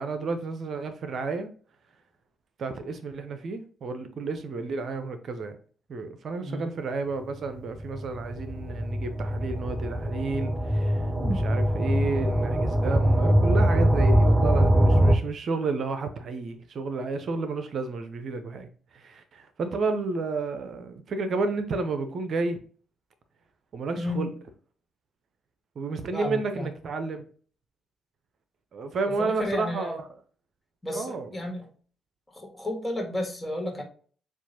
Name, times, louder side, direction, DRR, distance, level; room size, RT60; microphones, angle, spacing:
voice 1, 0.0-1.5 2.6-5.6 5.9-22.6 23.7-24.3 25.8-27.3 28.7-30.1 30.9-31.3, right 3 dB, 60° right, 0.6 m, -31 dB
voice 2, 6.4-6.7 11.1-11.4 23.9-24.3 26.1-26.7 29.2-30.0 30.8-31.7 32.3-33.8, left 1 dB, 20° left, 1.7 m, -32 dB
sound 1, 7.8-15.2, equal, 20° right, 0.7 m, -23 dB
7.1 x 2.5 x 2.8 m
hypercardioid pair, 45°, 0 cm